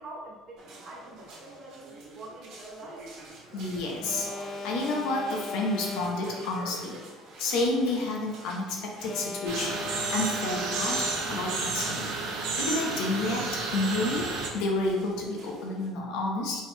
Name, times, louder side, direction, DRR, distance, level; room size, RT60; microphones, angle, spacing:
voice 1, 0.0-3.0 16.5-16.6, right 2 dB, 30° right, -4 dB, 0.9 m, -45 dB
sound 1, 0.6-15.9, right 2 dB, 60° right, 1.1 m, -48 dB
voice 2, 3.5-7.0 7.4-12.1 12.6-16.6, left 2 dB, 75° left, -1 dB, 0.8 m, -30 dB
Alarm, 4.0-6.6 9.0-11.6, left 2 dB, 35° left, 0.3 m, -38 dB
sound 2, 9.5-14.5, right 3 dB, 80° right, 0.7 m, -31 dB
4.5 x 3.0 x 2.2 m, 1.3 s
cardioid pair, 150°, 0 cm